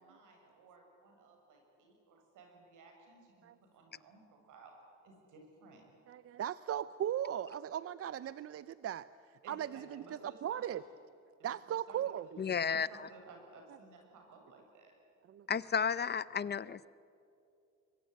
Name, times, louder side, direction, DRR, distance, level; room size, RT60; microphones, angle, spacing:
voice 1, 0.0-4.7 5.0-5.8 9.4-10.8 11.4-11.5 11.9-12.1 12.7-14.9, right 3 dB, 85° right, 2 dB, 6.6 m, -57 dB
voice 2, 6.1-9.1 9.5-10.8 11.4-12.3 15.3-15.5, right 10 dB, 50° right, 16 dB, 0.6 m, -38 dB
voice 3, 12.4-12.9 15.5-16.9, left 6 dB, 35° left, 18 dB, 0.6 m, -32 dB
24.5 x 22.0 x 9.3 m, 2.6 s
cardioid pair, 90°, 30 cm